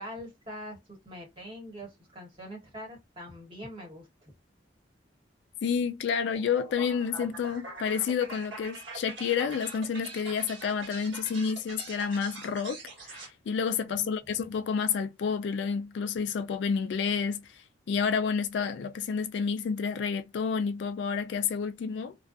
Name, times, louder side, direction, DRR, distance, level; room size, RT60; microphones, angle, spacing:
voice 1, 0.0-4.3 13.9-14.2, equal, 30° right, 1.2 m, -43 dB
voice 2, 5.6-17.4 17.9-22.2, left 6 dB, 70° left, 0.3 m, -30 dB
sound 1, 6.3-13.3, right 3 dB, 90° right, 1.2 m, -44 dB
2.5 x 2.3 x 2.4 m
head